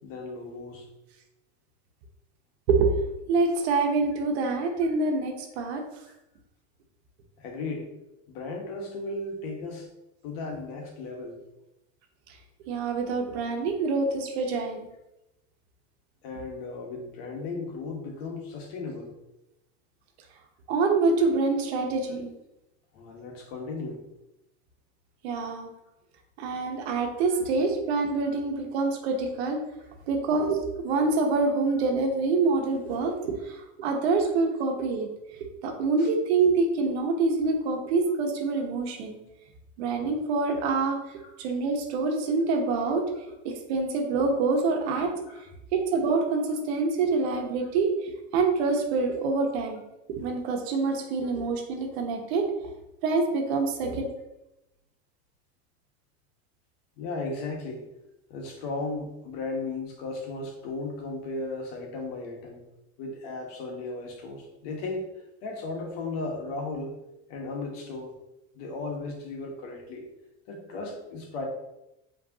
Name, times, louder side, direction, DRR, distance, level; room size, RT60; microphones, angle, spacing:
voice 1, 0.0-0.9 7.4-7.9 8.3-9.9 10.2-11.4 16.2-19.2 22.9-24.0 26.9-27.0 28.2-28.3 36.0-36.1 45.3-45.4 57.0-57.8 58.3-62.6 63.0-65.1 65.4-66.9 67.3-68.1 68.5-70.1 70.5-71.4, left 3 dB, 70° left, 1 dB, 1.4 m, -35 dB
voice 2, 3.3-5.8 12.7-14.9 20.7-22.3 25.2-25.7 26.4-29.6 30.1-35.1 35.6-39.2 39.8-41.0 41.4-43.0 43.4-45.1 45.7-49.8 50.1-52.4 53.0-54.1, right 3 dB, 80° right, 2 dB, 1.1 m, -26 dB
5.5 x 3.2 x 2.8 m, 0.90 s
supercardioid pair, 125°, 32 cm